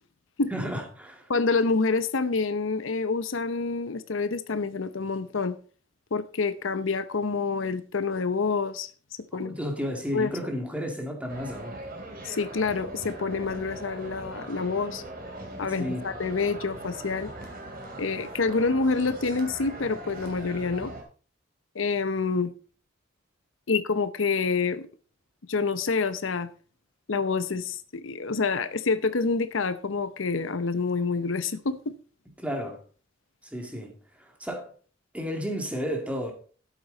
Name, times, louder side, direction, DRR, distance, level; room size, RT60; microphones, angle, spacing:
voice 1, 0.5-1.3 9.3-11.8 15.8-16.1 32.4-32.8 33.4-34.7 35.1-36.3, equal, 5° right, 2.3 m, -32 dB
voice 2, 1.3-5.6 6.1-8.9 9.3-9.5 10.1-10.3 12.2-15.0 15.6-17.3 18.0-20.9 21.7-22.5 23.7-24.9 25.5-26.5 27.1-31.9, left 4 dB, 80° left, 0.8 m, -27 dB
sound 1, 11.3-21.0, right 1 dB, 50° right, 3.0 m, -40 dB
12.5 x 8.3 x 4.0 m
head